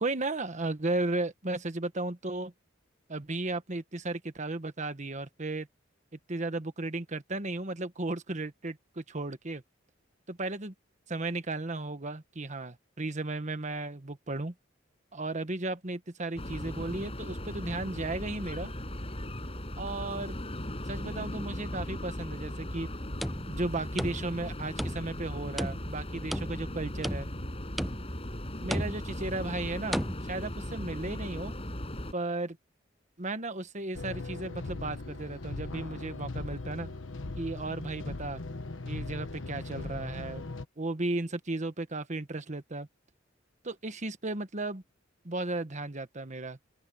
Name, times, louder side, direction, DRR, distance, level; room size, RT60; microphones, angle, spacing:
voice 1, 0.0-2.5 3.1-5.7 6.3-9.6 10.3-10.7 11.1-14.5 15.1-18.7 19.8-20.3 20.9-22.9 23.5-27.3 28.6-31.5 32.1-32.6 33.2-36.9 37.4-38.4 38.9-40.5 40.8-42.9 43.6-44.8 45.2-46.6, right 2 dB, 40° right, 1.4 m, -35 dB
sound 1, 16.4-32.1, left 1 dB, 30° left, 7.6 m, -38 dB
sound 2, 23.0-24.5 24.8-25.3 25.6-26.7 27.0-27.5 27.8-28.2 28.7-29.2 29.9-30.1, equal, ahead, 0.4 m, -34 dB
sound 3, 33.9-40.7, left 2 dB, 75° left, 1.2 m, -39 dB
open air
head